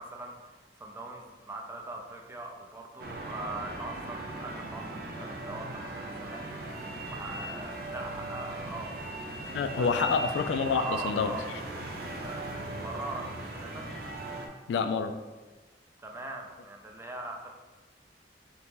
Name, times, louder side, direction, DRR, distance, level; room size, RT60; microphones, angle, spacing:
voice 1, 0.0-9.0 9.5-10.3 10.7-11.4 12.2-13.9 16.0-17.5, right 2 dB, 15° right, 1 dB, 0.4 m, -41 dB
sound 1, 3.0-14.5, right 2 dB, 60° right, 0.6 m, -38 dB
voice 2, 9.5-11.4 14.7-15.1, left 5 dB, 75° left, 9 dB, 0.3 m, -27 dB
4.0 x 2.9 x 3.6 m, 1.2 s
head